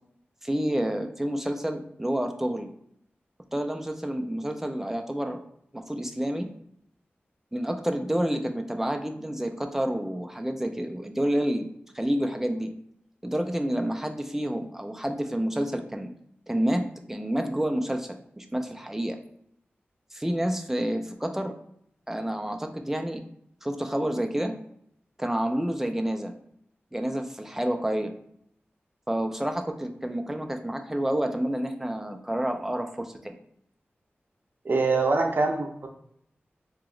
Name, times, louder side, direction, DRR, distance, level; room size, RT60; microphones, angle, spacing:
voice 1, 0.4-2.7 3.5-5.4 5.7-6.5 7.5-11.7 11.9-12.7 13.2-16.1 16.5-19.2 20.1-21.5 22.1-23.2 23.6-24.5 25.2-26.3 26.9-28.1 29.1-33.3, right 1 dB, 10° right, 5 dB, 0.4 m, -29 dB
voice 2, 34.6-35.9, right 3 dB, 55° right, 3 dB, 0.6 m, -24 dB
2.9 x 2.9 x 3.7 m, 0.71 s
wide cardioid pair, 80°, 4 cm